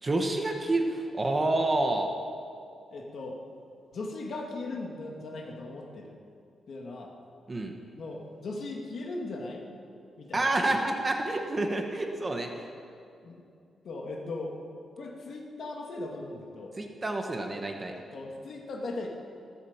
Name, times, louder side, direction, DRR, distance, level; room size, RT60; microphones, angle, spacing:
voice 1, 0.0-2.1 7.5-7.7 10.3-12.6 16.8-17.9, right 2 dB, 20° right, 3 dB, 1.2 m, -28 dB
voice 2, 2.9-3.4 3.9-6.2 6.7-7.1 8.0-9.7 10.2-10.8 13.2-13.4 13.8-14.5 15.0-16.7 17.9-19.1, left 2 dB, 50° left, 1 dB, 2.2 m, -38 dB
15.0 x 13.0 x 7.2 m, 2.5 s
wide cardioid pair, 175°, 0 cm